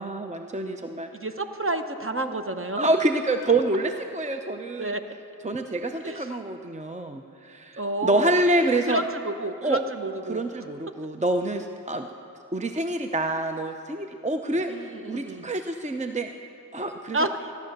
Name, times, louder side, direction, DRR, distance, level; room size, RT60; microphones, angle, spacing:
voice 1, 0.0-1.1 2.8-4.9 5.4-9.0 9.6-9.8 10.3-12.1 12.5-16.3 16.7-17.3, right 2 dB, 20° right, 6 dB, 0.6 m, -27 dB
voice 2, 1.1-2.9 4.8-5.0 6.0-6.3 7.8-8.3 8.8-10.4 14.7-15.5 17.1-17.5, right 2 dB, 35° right, 7 dB, 1.0 m, -29 dB
15.5 x 10.5 x 6.7 m, 2.7 s
cardioid pair, 45°, 36 cm